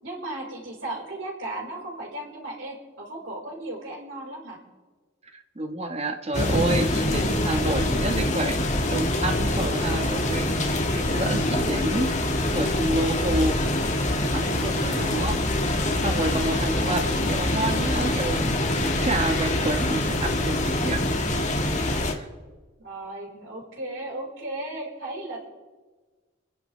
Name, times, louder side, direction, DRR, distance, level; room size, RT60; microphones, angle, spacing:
voice 1, 0.0-4.6 16.8-17.0 22.8-25.5, right 1 dB, 80° right, -2 dB, 4.3 m, -36 dB
voice 2, 5.5-8.6 8.9-12.2 12.5-13.6 14.1-15.4 16.0-21.0 22.1-22.2, right 1 dB, 35° right, 5 dB, 1.4 m, -29 dB
sound 1, 6.3-22.1, left 1 dB, 40° left, 1.5 m, -25 dB
28.5 x 10.5 x 3.3 m, 1.3 s
head